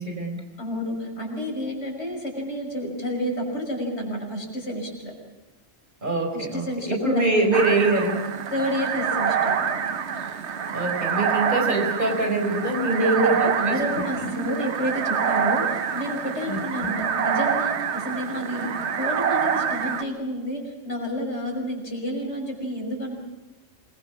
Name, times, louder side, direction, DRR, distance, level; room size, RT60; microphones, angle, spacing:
voice 1, 0.0-0.4 6.0-8.3 10.7-13.4 13.7-14.5 16.5-17.0, right 2 dB, 40° right, 2 dB, 4.8 m, -25 dB
voice 2, 0.6-5.2 6.3-7.3 8.5-9.8 12.9-23.1, equal, 60° left, 1 dB, 6.1 m, -29 dB
sound 1, 7.5-20.0, right 7 dB, 60° right, 1.2 m, -26 dB
27.5 x 21.5 x 6.1 m, 1.0 s
omnidirectional pair, 1.3 m